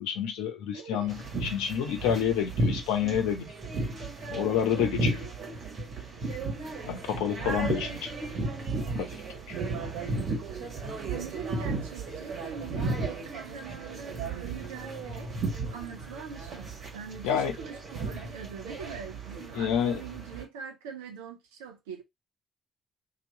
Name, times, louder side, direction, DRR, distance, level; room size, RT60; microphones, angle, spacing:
voice 1, 0.0-3.5 4.3-5.2 6.9-8.1 9.0-9.2 9.5-9.6 17.2-17.5 19.5-20.0, left 9 dB, 75° left, 0.8 m, -29 dB
voice 2, 0.7-1.1 4.8-5.3 7.6-8.0 11.1-15.3 15.7-22.0, right 6 dB, 80° right, 0.8 m, -43 dB
sound 1, 1.1-20.4, right 3 dB, 55° right, 1.6 m, -34 dB
3.0 x 2.9 x 4.0 m
hypercardioid pair, 45°, 0 cm